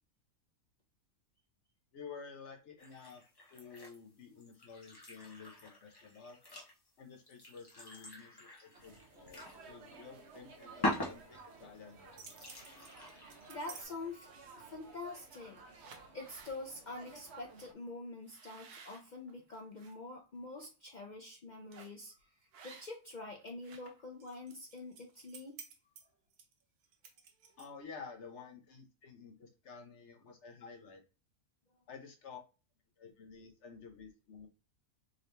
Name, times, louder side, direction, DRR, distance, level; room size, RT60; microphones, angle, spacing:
voice 1, 1.9-3.2 3.5-6.4 7.0-12.2 27.6-31.0 31.9-32.4 33.0-34.5, left 5 dB, 55° left, 3 dB, 1.0 m, -51 dB
sound 1, 2.8-4.0 4.4-9.6 9.9-10.0 10.8-11.7 12.1-13.8, left 1 dB, 25° left, 0.5 m, -42 dB
sound 2, 8.7-17.7, right 4 dB, 55° right, 0.8 m, -56 dB
sound 3, 11.9-13.8 14.3-14.7 15.3-15.5 15.8-16.6 17.0-17.2 17.5-17.7 18.3-19.9 20.4-20.7 21.7-22.0 22.5-23.1 23.4-27.9, right 6 dB, 80° right, 1.3 m, -55 dB
voice 2, 13.5-14.3 14.6-25.6, left 2 dB, 80° left, 1 dB, 0.4 m, -46 dB
3.8 x 2.8 x 3.3 m, 0.32 s
omnidirectional pair, 1.6 m